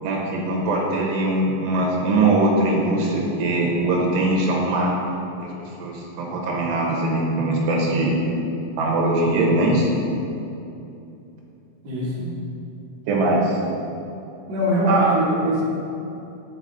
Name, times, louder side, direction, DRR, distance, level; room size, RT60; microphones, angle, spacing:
voice 1, 0.0-5.2 5.4-5.5 5.8-8.1 8.8-9.9 13.1-13.6 14.8-15.1, right 2 dB, 80° right, -2 dB, 3.1 m, -21 dB
voice 2, 11.8-12.3 14.5-15.6, equal, 50° right, -8 dB, 1.2 m, -22 dB
10.5 x 4.2 x 4.1 m, 2.7 s
omnidirectional pair, 4.9 m